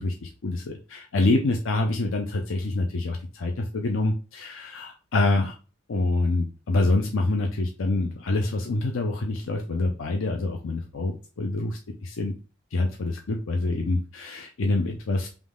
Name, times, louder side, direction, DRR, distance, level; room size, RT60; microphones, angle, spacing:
voice 1, 0.0-5.5 5.9-12.3 12.7-15.3, left 2 dB, 70° left, 3 dB, 0.5 m, -26 dB
3.7 x 3.0 x 3.6 m, 0.34 s
head